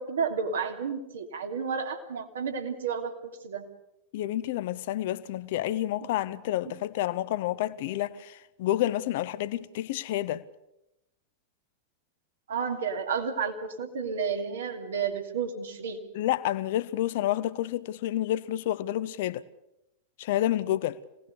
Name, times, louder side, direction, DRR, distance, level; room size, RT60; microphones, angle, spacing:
voice 1, 0.0-3.7 12.5-16.0, right 6 dB, 65° right, 2.9 m, -31 dB
voice 2, 4.1-10.4 16.1-19.4 20.2-21.0, left 13 dB, 50° left, 0.9 m, -29 dB
26.5 x 18.5 x 6.9 m
figure-of-eight pair, 90°, 0 cm